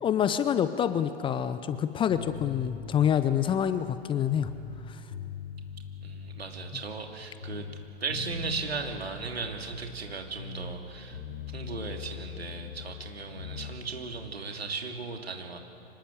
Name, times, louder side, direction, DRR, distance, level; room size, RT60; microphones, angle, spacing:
voice 1, 0.0-4.5 4.9-5.0, left 9 dB, 15° left, 12 dB, 0.7 m, -27 dB
sound 1, 2.1-4.8 5.1-7.2 7.4-10.8 11.1-13.7, left 6 dB, 60° left, 5.5 m, -41 dB
voice 2, 6.0-7.7 8.0-11.2 11.5-15.6, right 4 dB, 75° right, 3 dB, 2.8 m, -37 dB
25.0 x 20.0 x 7.6 m, 2.7 s
figure-of-eight pair, 100°, 31 cm